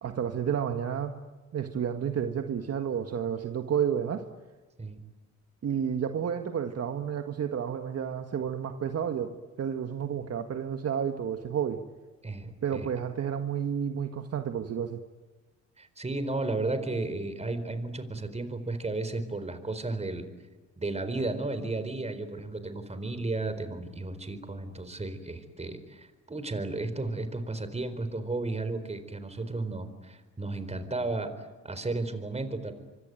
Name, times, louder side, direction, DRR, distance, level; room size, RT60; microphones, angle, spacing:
voice 1, 0.0-1.1 1.5-4.3 5.6-11.8 12.6-15.0, right 8 dB, 55° right, 6 dB, 1.7 m, -31 dB
voice 2, 12.2-12.9 15.8-20.3 20.8-32.7, right 2 dB, 20° right, 11 dB, 4.4 m, -33 dB
25.5 x 24.0 x 9.2 m, 1.2 s
cardioid pair, 90°, 30 cm